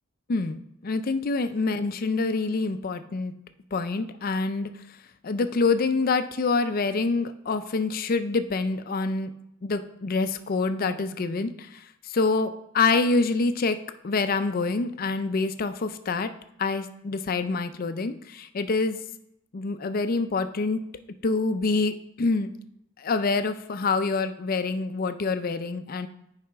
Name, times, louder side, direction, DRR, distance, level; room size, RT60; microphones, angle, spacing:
voice 1, 0.3-3.3 3.7-4.7 5.2-9.3 9.6-13.8 14.0-16.3 16.6-19.0 19.5-20.8 21.2-22.5 23.0-26.1, left 3 dB, 45° left, 10 dB, 0.5 m, -26 dB
9.4 x 4.9 x 3.5 m, 0.80 s
head